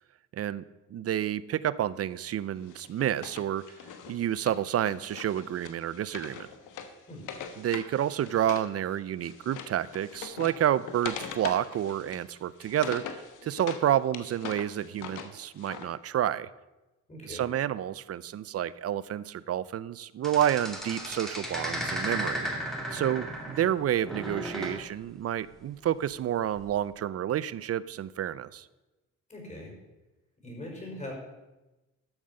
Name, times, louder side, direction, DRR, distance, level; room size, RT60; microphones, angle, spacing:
voice 1, 0.3-0.6 0.9-3.6 4.1-6.5 7.6-16.5 17.2-22.5 22.9-28.7, right 11 dB, 50° right, 18 dB, 0.6 m, -29 dB
Wood, 2.7-8.7 9.0-13.8 14.1-15.9, left 7 dB, 85° left, 1.3 m, -42 dB
voice 2, 17.1-17.4 29.3-29.7 30.4-31.1, left 1 dB, 25° left, 0 dB, 4.9 m, -41 dB
sound 1, 20.2-23.7 24.0-24.8 26.6-26.8, equal, ahead, 2.6 m, -35 dB
13.0 x 7.3 x 5.5 m, 1.1 s
cardioid pair, 90°, 30 cm